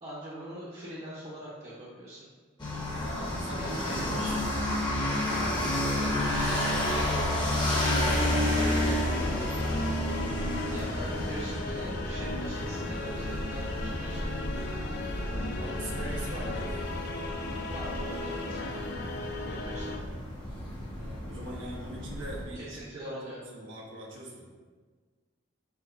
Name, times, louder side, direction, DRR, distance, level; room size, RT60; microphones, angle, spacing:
voice 1, 0.0-2.2 3.6-4.7 5.3-9.4 10.7-14.3 17.7-18.7 19.4-19.9 22.5-23.4, right 1 dB, 30° right, -9 dB, 0.8 m, -42 dB
sound 1, 2.6-22.4, left 1 dB, 25° left, 0.9 m, -31 dB
voice 2, 2.9-4.3 10.1-11.5 15.1-16.9 21.0-24.5, right 1 dB, 85° right, -3 dB, 1.0 m, -42 dB
sound 2, 7.9-20.0, left 2 dB, 60° left, 0.4 m, -37 dB
4.8 x 4.1 x 2.5 m, 1.5 s
head